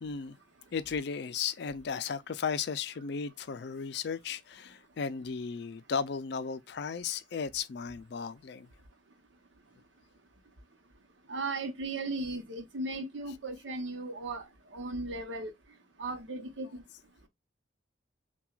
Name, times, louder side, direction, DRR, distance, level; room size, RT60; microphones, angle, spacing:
voice 1, 0.0-0.4 0.7-8.7, left 6 dB, 60° left, 0.4 m, -35 dB
voice 2, 11.3-15.5 16.0-16.8, right 2 dB, 80° right, 0.8 m, -36 dB
5.8 x 2.3 x 2.3 m
head